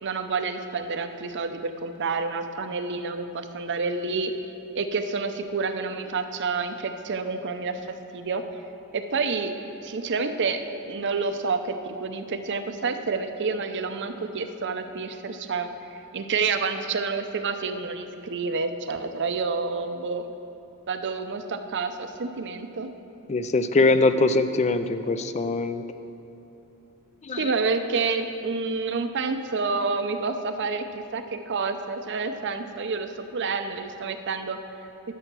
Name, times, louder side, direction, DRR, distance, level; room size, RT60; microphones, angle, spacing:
voice 1, 0.0-4.3 4.7-7.8 8.1-8.4 8.9-9.5 9.8-20.3 20.9-22.9 27.4-30.9 31.1-34.6, right 4 dB, 55° right, 8 dB, 0.6 m, -29 dB
voice 2, 23.3-25.8 27.2-27.4, left 3 dB, 30° left, 10 dB, 0.4 m, -22 dB
12.0 x 7.6 x 6.1 m, 2.9 s
head